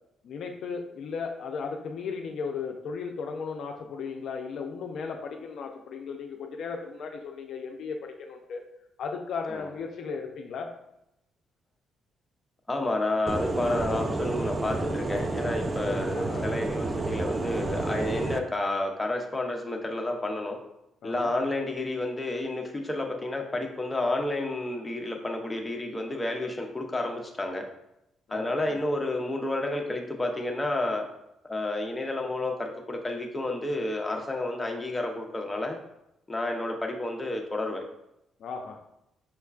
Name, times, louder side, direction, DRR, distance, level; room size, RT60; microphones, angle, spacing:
voice 1, 0.2-8.6 9.0-10.7 16.1-16.5 21.0-21.3 28.3-28.9 38.4-38.9, left 5 dB, 70° left, 3 dB, 0.4 m, -36 dB
voice 2, 12.7-20.6 21.0-27.6 28.3-31.0 31.5-35.8 36.3-37.8, left 2 dB, 15° left, 2 dB, 0.6 m, -30 dB
sound 1, 13.3-18.4, right 2 dB, 30° right, 0.3 m, -30 dB
5.6 x 2.2 x 2.3 m, 0.83 s
cardioid pair, 90°, 0 cm